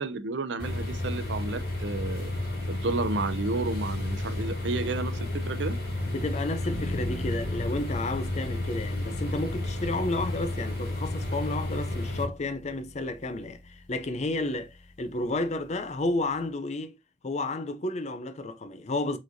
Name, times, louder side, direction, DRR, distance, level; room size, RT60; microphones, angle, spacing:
voice 1, 0.0-2.3 2.7-5.8, right 3 dB, 70° right, 0.6 m, -32 dB
sound 1, 0.6-12.2, left 1 dB, 55° left, 2.5 m, -32 dB
voice 2, 6.0-17.0 17.2-19.2, left 2 dB, 35° left, 0.5 m, -31 dB
sound 2, 6.7-16.4, left 2 dB, 80° left, 1.1 m, -42 dB
5.1 x 4.0 x 2.7 m
head